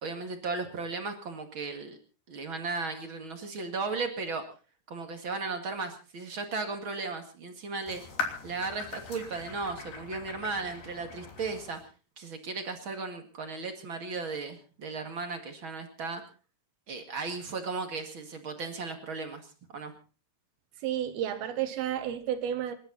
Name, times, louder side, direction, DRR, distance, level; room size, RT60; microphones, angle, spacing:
voice 1, 0.0-2.0 2.3-4.4 4.9-8.0 8.4-11.8 12.2-16.2 16.9-19.9, right 4 dB, 40° right, 2.0 m, -36 dB
sound 1, 7.9-11.9, left 5 dB, 70° left, 4.9 m, -40 dB
voice 2, 20.8-22.7, right 10 dB, 70° right, 3.2 m, -31 dB
28.0 x 11.5 x 4.1 m
omnidirectional pair, 4.7 m